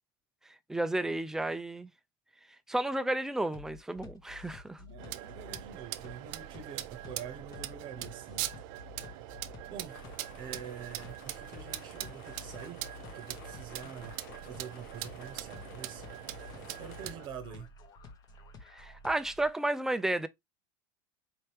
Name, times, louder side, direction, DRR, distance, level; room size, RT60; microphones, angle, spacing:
voice 1, 0.7-1.9 2.7-4.8 18.7-20.3, right 1 dB, 5° right, 0.4 m, -32 dB
sound 1, 3.5-19.5, left 4 dB, 35° left, 1.0 m, -51 dB
voice 2, 4.8-8.5 8.9-9.3 9.7-12.8 13.1-14.2 14.4-16.1 16.7-17.7, right 8 dB, 45° right, 0.9 m, -46 dB
sound 2, 5.0-17.3, right 15 dB, 65° right, 0.5 m, -42 dB
sound 3, 9.9-17.1, left 8 dB, 75° left, 1.0 m, -54 dB
4.5 x 2.8 x 3.3 m
supercardioid pair, 130°, 11 cm